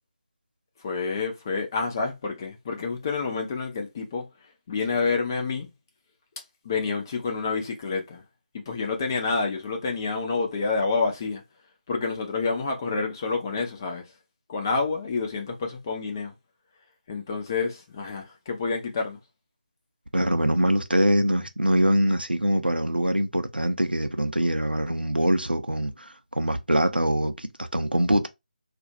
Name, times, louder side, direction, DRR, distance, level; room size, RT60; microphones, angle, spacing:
voice 1, 0.8-4.3 4.7-5.7 6.6-8.2 8.5-11.4 11.9-14.1 14.5-16.3 17.1-19.2, left 4 dB, 20° left, 0.6 m, -28 dB
voice 2, 20.1-28.3, right 1 dB, 90° right, 0.7 m, -23 dB
2.5 x 2.3 x 4.1 m
figure-of-eight pair, 155°, 5 cm